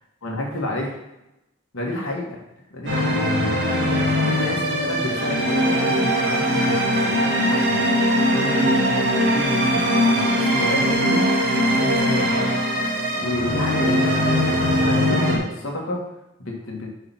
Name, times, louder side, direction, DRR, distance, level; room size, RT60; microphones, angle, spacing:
voice 1, 0.2-1.0 1.7-2.4 2.7-3.2 4.3-7.8 8.3-11.3 11.6-12.4 13.2-16.1 16.4-16.9, left 1 dB, 80° left, -1 dB, 1.6 m, -30 dB
sound 1, 2.9-15.4, equal, 60° right, 1.7 m, -20 dB
5.8 x 4.9 x 5.9 m, 0.90 s
head